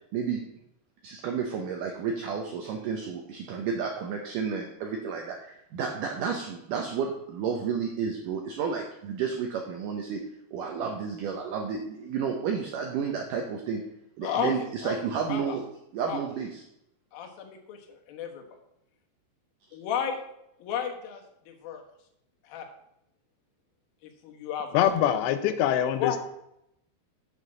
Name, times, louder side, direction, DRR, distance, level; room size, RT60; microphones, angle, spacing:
voice 1, 1.0-10.2 10.5-13.8 14.2-15.6 15.9-16.6, right 6 dB, 80° right, 2 dB, 1.9 m, -31 dB
voice 2, 17.1-18.4 19.7-20.2 20.6-21.8 22.4-22.7 24.2-24.7 26.0-26.2, left 8 dB, 65° left, 3 dB, 2.7 m, -33 dB
voice 3, 24.7-26.2, left 10 dB, 85° left, 10 dB, 3.0 m, -24 dB
7.5 x 6.6 x 6.1 m, 0.79 s
omnidirectional pair, 5.0 m